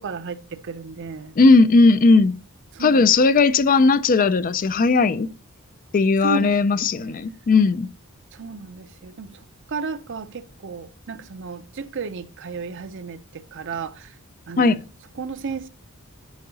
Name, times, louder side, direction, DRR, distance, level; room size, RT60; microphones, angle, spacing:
voice 1, 0.0-1.3 2.7-3.1 6.2-6.6 7.0-7.2 8.4-9.4 9.7-14.1 14.5-14.8 15.2-15.7, right 4 dB, 55° right, 0.6 m, -33 dB
voice 2, 1.4-2.3 2.8-5.3 5.9-7.9 14.6-14.8, left 3 dB, 40° left, 0.4 m, -17 dB
10.5 x 4.7 x 4.0 m
head